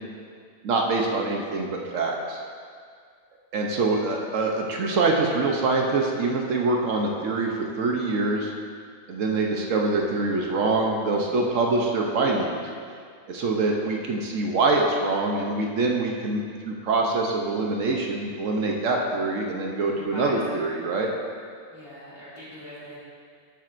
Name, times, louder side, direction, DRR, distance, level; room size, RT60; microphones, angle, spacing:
voice 1, 0.6-2.4 3.5-8.5 9.1-12.5 13.3-21.1, right 3 dB, 70° right, 0 dB, 1.1 m, -25 dB
voice 2, 19.9-20.7 21.7-23.0, equal, 40° left, -9 dB, 2.7 m, -41 dB
13.0 x 7.3 x 2.6 m, 2.1 s
omnidirectional pair, 1.4 m